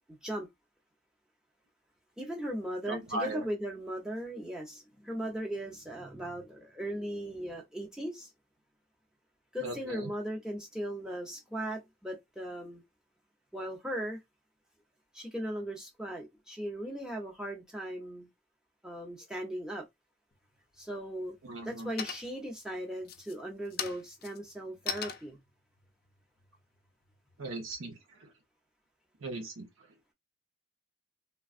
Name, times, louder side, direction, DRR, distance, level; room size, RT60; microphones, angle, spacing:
voice 1, 2.2-8.3 9.5-12.8 13.5-14.2 15.1-18.3 18.8-19.8 20.8-21.4 21.6-25.4, equal, 5° right, 0.7 m, -38 dB
voice 2, 2.9-3.4 9.6-10.1 21.4-21.9 27.4-28.3 29.2-29.7, right 2 dB, 80° right, 0.9 m, -38 dB
sound 1, 20.3-20.9 21.3-21.7 22.0-22.5 23.0-27.4, left 8 dB, 45° left, 0.5 m, -41 dB
3.3 x 2.2 x 2.5 m
head